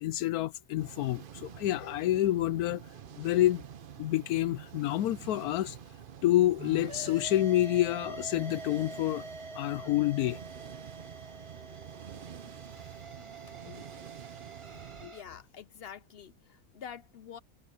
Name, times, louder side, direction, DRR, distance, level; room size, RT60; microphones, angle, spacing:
voice 1, 0.0-2.8 3.2-3.6 4.0-5.8 6.2-9.3 9.5-10.4 13.7-13.8 15.0-15.1, left 14 dB, 85° left, 1.1 m, -28 dB
sound 1, 0.8-15.1, right 9 dB, 50° right, 0.6 m, -48 dB
sound 2, 6.6-15.2, right 3 dB, 20° right, 1.1 m, -45 dB
voice 2, 15.1-17.4, left 8 dB, 65° left, 0.6 m, -47 dB
omnidirectional pair, 1.6 m